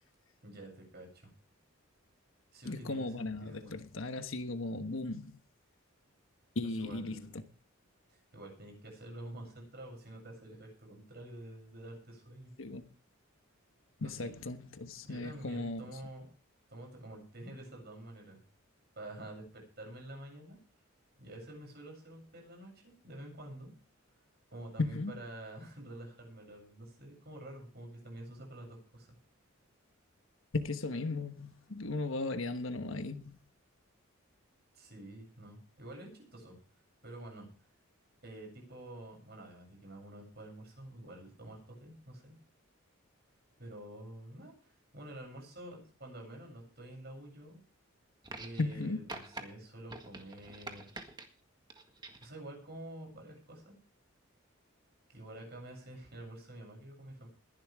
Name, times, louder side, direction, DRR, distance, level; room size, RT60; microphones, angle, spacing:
voice 1, 0.4-1.3 2.5-3.8 6.8-7.4 8.1-12.5 14.0-14.3 15.0-16.3 16.7-18.4 19.0-20.6 21.2-23.7 24.5-29.1 34.7-36.6 37.0-37.5 38.2-42.4 43.6-47.6 48.4-50.9 52.2-53.8 55.1-57.3, right 1 dB, 50° right, 7.8 m, -48 dB
voice 2, 2.6-5.3 6.5-7.4 12.6-12.8 14.0-15.8 24.8-25.1 30.5-33.4 48.6-49.0, left 3 dB, 70° left, 1.3 m, -36 dB
sound 1, 48.2-48.8 49.1-49.4 49.9-51.3 51.7-52.3 53.4-53.5, right 2 dB, 20° right, 1.7 m, -46 dB
21.0 x 11.5 x 3.6 m
head